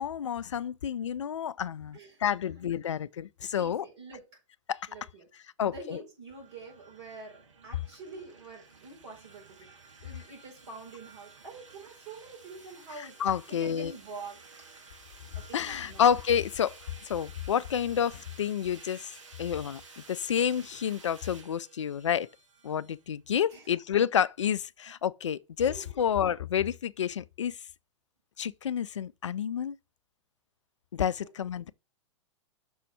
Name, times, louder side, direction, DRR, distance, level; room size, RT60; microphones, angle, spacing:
voice 1, 0.0-3.9 4.7-4.9 5.6-6.0 13.0-13.9 15.5-16.8 17.0-19.1 19.4-22.3 22.6-27.6 28.4-29.8 30.9-31.7, left 8 dB, 70° left, 0.4 m, -29 dB
voice 2, 1.9-2.7 3.5-4.3 4.9-5.3 5.6-13.2 13.5-14.4 15.3-16.1 23.5-23.7 25.6-25.9, right 3 dB, 60° right, 4.6 m, -46 dB
sound 1, 6.3-23.1, right 4 dB, 75° right, 1.5 m, -53 dB
6.3 x 4.1 x 6.0 m
figure-of-eight pair, 100°, 16 cm